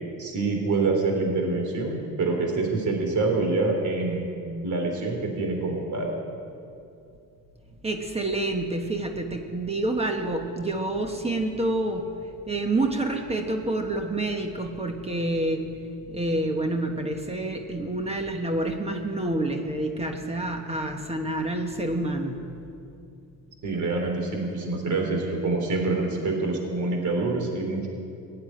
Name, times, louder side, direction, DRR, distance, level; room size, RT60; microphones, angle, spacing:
voice 1, 0.2-4.3 4.6-6.1 23.6-27.9, right 3 dB, 55° right, 2 dB, 3.6 m, -26 dB
voice 2, 7.8-12.1 12.5-15.6 16.1-22.4, right 2 dB, 15° right, 4 dB, 1.2 m, -28 dB
16.5 x 7.9 x 9.8 m, 2.6 s
cardioid pair, 130°, 35 cm